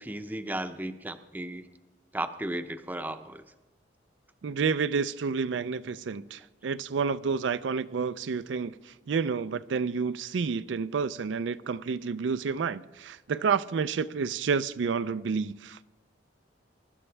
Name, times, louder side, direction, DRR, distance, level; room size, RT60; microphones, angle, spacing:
voice 1, 0.0-1.6 2.1-3.4, right 1 dB, 10° right, 0.6 m, -35 dB
voice 2, 4.4-15.8, right 5 dB, 80° right, 0.4 m, -30 dB
23.0 x 12.0 x 3.3 m
head